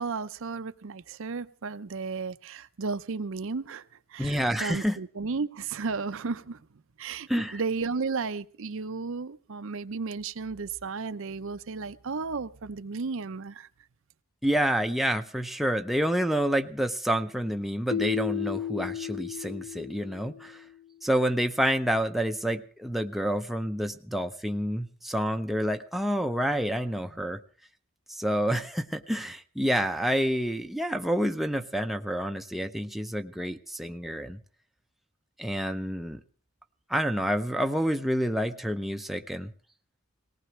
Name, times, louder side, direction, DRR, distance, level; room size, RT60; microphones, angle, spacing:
voice 1, 0.0-3.8 4.1-6.6 7.0-13.7, right 4 dB, 60° right, 12 dB, 0.6 m, -34 dB
voice 2, 4.2-5.0 7.3-7.6 14.4-20.6 21.0-27.4 28.1-34.4 35.4-36.2 36.9-39.5, equal, ahead, 5 dB, 0.6 m, -28 dB
Keyboard (musical), 17.9-20.7, left 9 dB, 80° left, 1.5 m, -34 dB
19.0 x 18.5 x 3.2 m, 0.42 s
head